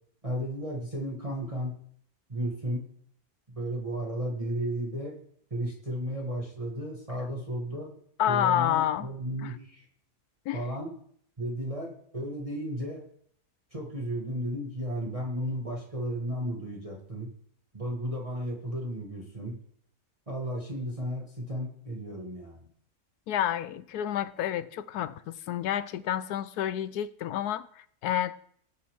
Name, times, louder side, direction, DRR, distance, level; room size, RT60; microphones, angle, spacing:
voice 1, 0.2-1.8 2.3-2.8 3.5-5.2 5.5-7.9 8.3-9.9 10.5-10.9 11.4-13.0 13.7-17.3 17.7-19.6 20.3-22.7, equal, 20° right, 1.8 m, -34 dB
voice 2, 8.2-9.1 9.4-9.5 10.5-10.6 23.3-28.4, left 11 dB, 75° left, 1.1 m, -29 dB
19.0 x 8.5 x 3.7 m
omnidirectional pair, 1.7 m